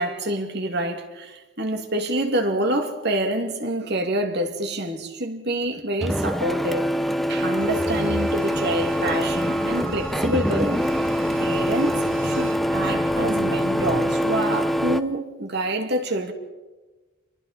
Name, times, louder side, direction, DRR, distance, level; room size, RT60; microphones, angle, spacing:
voice 1, 0.0-6.9 7.3-10.8 11.4-16.3, right 1 dB, 55° right, 2.6 m, -27 dB
Printer, 6.0-15.0, equal, ahead, 0.8 m, -24 dB
Bowed string instrument, 7.5-12.7 13.1-13.2, right 8 dB, 70° right, 2.1 m, -42 dB
sound 1, 8.5-14.0, left 1 dB, 70° left, 2.5 m, -38 dB
29.0 x 22.5 x 4.3 m
head